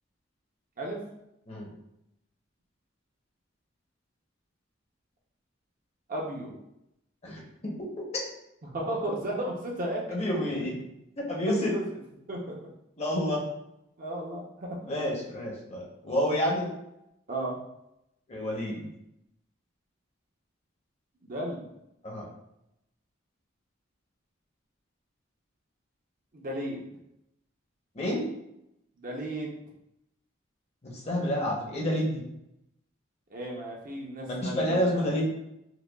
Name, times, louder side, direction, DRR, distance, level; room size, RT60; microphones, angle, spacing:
voice 1, 6.1-6.5 8.7-10.2 11.5-12.0 12.3-12.6 14.0-14.8 17.3-17.6 21.2-21.6 26.3-26.8 29.0-29.5 33.3-35.1, right 1 dB, 45° right, -1 dB, 0.7 m, -34 dB
voice 2, 7.2-7.9 8.1-8.2 10.1-10.8 11.2-11.7 13.0-13.4 14.8-16.7 18.3-18.9 22.0-22.3 27.9-28.2 30.8-32.2 34.3-35.2, equal, 35° left, -2 dB, 0.8 m, -29 dB
4.8 x 2.3 x 2.3 m, 0.82 s
head